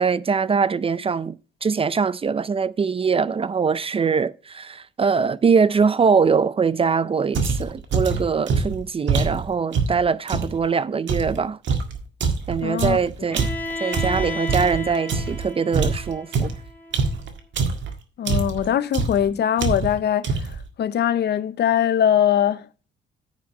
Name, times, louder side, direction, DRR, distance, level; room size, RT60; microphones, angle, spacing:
voice 1, 0.0-11.6 12.5-13.5 13.8-16.5, right 5 dB, 30° right, 0.4 m, -22 dB
sound 1, 7.3-10.6 11.1-15.4 15.7-17.9 18.3-18.7 18.9-19.3 19.6-20.0 20.2-20.6, right 4 dB, 65° right, 1.8 m, -24 dB
voice 2, 12.6-13.0 18.2-20.4 20.8-22.7, left 10 dB, 55° left, 0.6 m, -21 dB
Bowed string instrument, 13.3-17.2, left 2 dB, 10° left, 2.3 m, -33 dB
9.2 x 5.1 x 5.5 m
cardioid pair, 90°, 20 cm